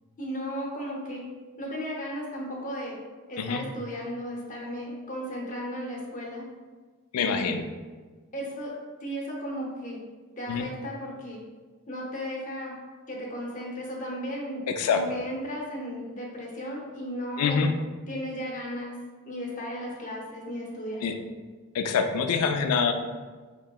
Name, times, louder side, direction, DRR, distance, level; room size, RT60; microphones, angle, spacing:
voice 1, 0.2-1.2 1.6-3.0 3.3-6.5 7.2-7.6 8.3-8.7 9.0-10.0 10.4-11.4 11.9-12.7 13.1-17.7 18.1-19.0 19.2-21.0, equal, 35° left, -2 dB, 0.7 m, -35 dB
voice 2, 7.1-7.6 10.5-10.6 14.8-15.0 17.4-17.7 21.0-21.1 21.7-22.9, left 6 dB, 80° left, 7 dB, 0.3 m, -25 dB
4.5 x 2.7 x 2.3 m, 1.4 s
head